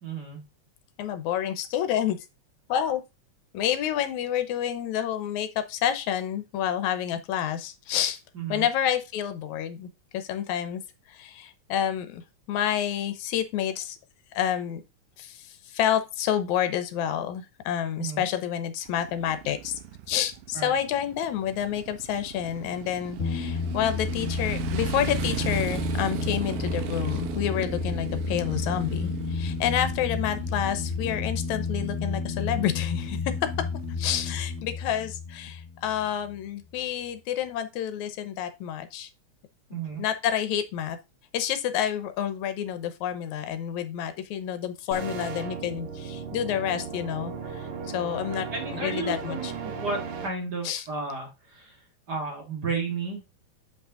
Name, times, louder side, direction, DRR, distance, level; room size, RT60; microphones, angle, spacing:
voice 1, 0.0-0.4 8.4-8.7 18.0-18.2 20.5-20.7 39.7-40.0 48.3-51.8 52.1-53.2, right 4 dB, 40° right, 1.8 m, -33 dB
voice 2, 1.0-2.2 2.7-3.0 3.5-8.2 8.5-10.8 11.1-12.2 12.5-14.0 14.3-14.8 15.2-19.8 20.1-33.5 34.0-39.1 40.0-41.0 41.3-47.7 47.9-48.5 48.7-49.5 50.6-50.9, left 10 dB, 80° left, 2.2 m, -29 dB
Motorcycle, 18.9-34.6, right 10 dB, 80° right, 2.3 m, -37 dB
sound 1, 23.2-36.4, left 5 dB, 40° left, 1.2 m, -32 dB
sound 2, 44.9-50.3, right 5 dB, 65° right, 1.6 m, -36 dB
7.6 x 5.4 x 3.7 m
omnidirectional pair, 3.5 m